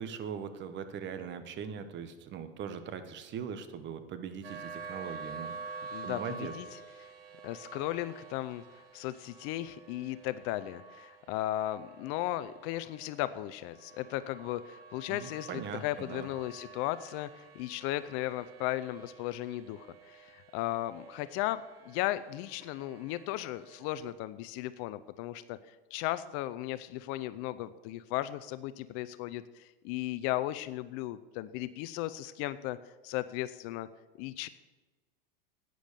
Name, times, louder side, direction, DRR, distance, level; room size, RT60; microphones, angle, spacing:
voice 1, 0.0-5.6 6.0-6.5 15.1-16.3, right 7 dB, 40° right, 10 dB, 1.3 m, -40 dB
sound 1, 4.4-24.1, right 4 dB, 90° right, 1.6 m, -49 dB
voice 2, 5.9-6.8 7.4-8.6 8.9-21.6 21.9-32.8 33.0-33.9 34.2-34.5, left 15 dB, 50° left, 14 dB, 0.6 m, -36 dB
11.5 x 9.2 x 6.8 m, 1.2 s
hypercardioid pair, 110°, 29 cm